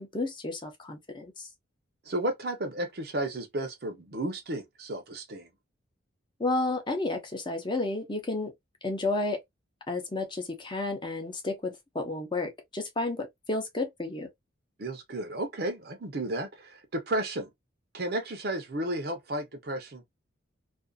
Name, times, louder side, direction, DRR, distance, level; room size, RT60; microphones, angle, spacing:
voice 1, 0.0-1.5 6.4-8.5 8.8-9.4 9.9-14.3, left 2 dB, 25° left, 0.6 m, -31 dB
voice 2, 2.1-5.5 14.8-17.5 17.9-20.0, right 1 dB, 50° right, 0.7 m, -33 dB
2.5 x 2.3 x 2.3 m
head